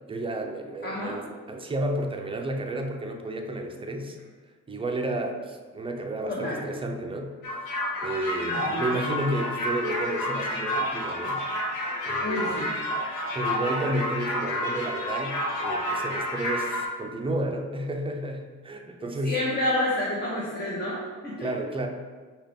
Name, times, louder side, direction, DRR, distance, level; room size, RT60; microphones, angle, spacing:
voice 1, 0.1-4.2 4.7-7.4 8.0-11.5 12.0-12.7 13.3-19.4 21.4-21.9, right 1 dB, 20° right, 3 dB, 0.5 m, -31 dB
voice 2, 0.8-1.2 6.3-6.6 8.4-9.0 12.2-12.7 19.2-21.5, left 1 dB, 35° left, -5 dB, 1.0 m, -29 dB
sound 1, 7.4-16.8, left 1 dB, 80° left, 0.9 m, -29 dB
5.3 x 2.4 x 3.7 m, 1.4 s
cardioid pair, 90°, 30 cm